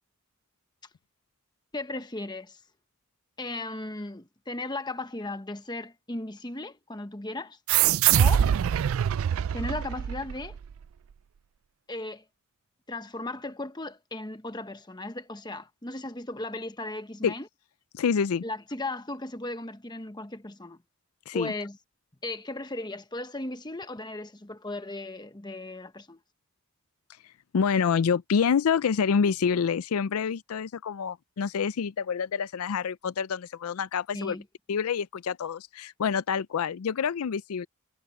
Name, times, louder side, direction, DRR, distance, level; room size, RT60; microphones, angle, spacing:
voice 1, 1.7-2.6 3.4-7.6 8.2-8.5 9.5-10.6 11.9-12.2 12.9-17.5 18.4-20.8 21.3-21.8 22.2-26.2 34.1-34.4, left 2 dB, 20° left, 1.1 m, -36 dB
sound 1, 7.7-10.7, right 10 dB, 70° right, 0.3 m, -24 dB
voice 2, 17.9-18.4 21.3-21.5 27.5-34.4 34.7-37.7, left 6 dB, 80° left, 0.4 m, -27 dB
head